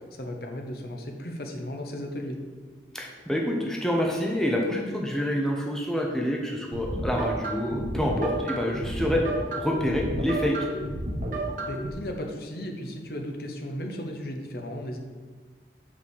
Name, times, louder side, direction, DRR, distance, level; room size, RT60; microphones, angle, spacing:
voice 1, 0.1-2.4 11.6-15.0, equal, 55° left, 3 dB, 0.9 m, -35 dB
voice 2, 2.9-9.2 9.6-10.6, equal, 5° left, -1 dB, 0.7 m, -27 dB
sound 1, 6.7-11.9, right 1 dB, 45° right, 1.2 m, -31 dB
6.0 x 4.5 x 6.4 m, 1.4 s
head